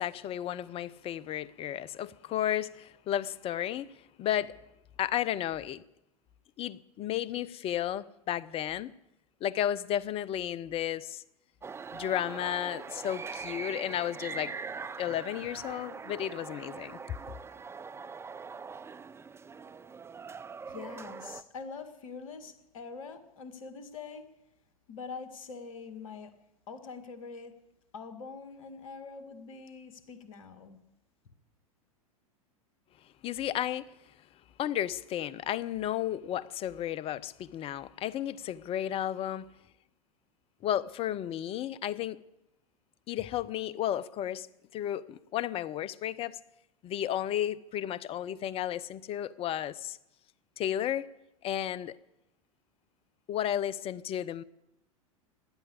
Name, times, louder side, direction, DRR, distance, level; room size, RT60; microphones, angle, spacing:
voice 1, 0.0-4.5 5.0-5.8 6.6-8.9 9.4-11.2 11.9-14.5 15.0-17.0 33.2-33.9 34.6-39.5 40.6-42.2 43.1-44.5 44.7-46.4 46.8-50.0 50.6-51.1 51.4-52.0 53.3-54.4, left 11 dB, 30° left, 0.5 m, -33 dB
sound 1, 11.6-21.4, right 5 dB, 15° right, 0.6 m, -42 dB
voice 2, 20.7-24.3 24.9-26.3 26.7-27.6 27.9-30.8, left 5 dB, 65° left, 2.0 m, -44 dB
16.0 x 11.0 x 8.1 m
figure-of-eight pair, 90°, 19 cm